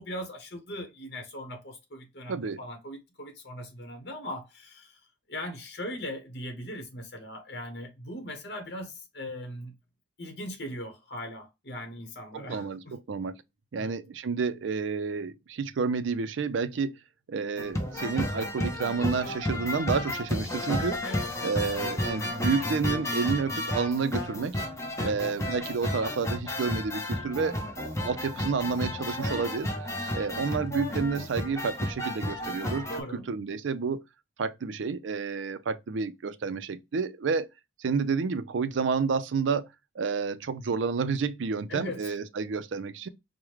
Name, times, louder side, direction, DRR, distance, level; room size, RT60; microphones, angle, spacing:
voice 1, 0.0-5.0 5.3-9.8 10.2-12.9 13.8-14.0 21.0-21.3 25.0-25.2 32.9-33.3 41.7-42.2, left 1 dB, 60° left, 1.1 m, -39 dB
voice 2, 2.3-2.6 12.3-13.4 13.7-17.0 17.3-21.0 21.4-24.6 25.0-29.7 30.1-34.0 34.4-37.5 37.8-39.7 40.0-43.1, right 5 dB, 90° right, 0.4 m, -30 dB
sound 1, 17.6-33.0, left 1 dB, 15° left, 0.7 m, -32 dB
4.8 x 2.2 x 3.1 m
head